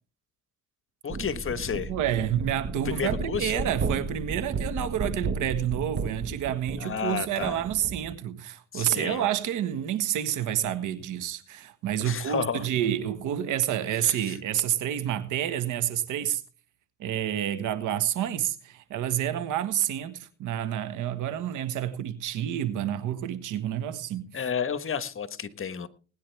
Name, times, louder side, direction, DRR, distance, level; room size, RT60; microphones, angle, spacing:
voice 1, 1.0-1.9 2.8-3.7 6.8-7.6 8.7-9.3 12.0-12.6 14.0-14.3 24.3-25.9, left 7 dB, 45° left, 1.4 m, -31 dB
sound 1, 1.1-8.1, right 4 dB, 40° right, 1.5 m, -33 dB
voice 2, 1.9-16.4 17.0-24.4, right 10 dB, 90° right, 1.6 m, -29 dB
20.0 x 10.0 x 3.5 m
cardioid pair, 90°, 30 cm